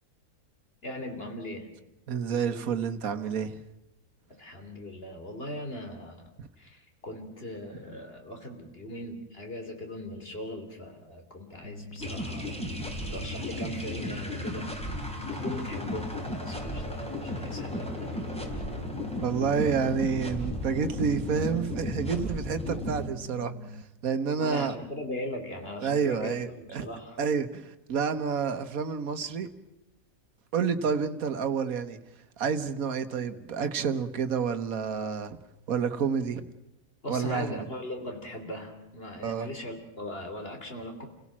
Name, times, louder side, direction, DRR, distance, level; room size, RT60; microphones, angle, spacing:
voice 1, 0.8-1.7 4.4-6.3 6.6-12.5 13.1-14.7 15.4-18.2 24.4-27.3 37.0-41.1, left 1 dB, 40° left, 5 dB, 3.5 m, -39 dB
voice 2, 2.1-3.6 19.2-24.8 25.8-26.9 27.2-29.5 30.5-32.0 32.4-35.4 35.7-36.4 37.1-37.5 39.2-39.5, right 6 dB, 65° right, 9 dB, 1.7 m, -29 dB
sound 1, 11.6-23.8, left 1 dB, 60° left, 1.5 m, -43 dB
sound 2, 12.0-23.1, left 1 dB, 5° left, 3.0 m, -35 dB
29.0 x 17.0 x 7.4 m, 0.93 s
omnidirectional pair, 1.6 m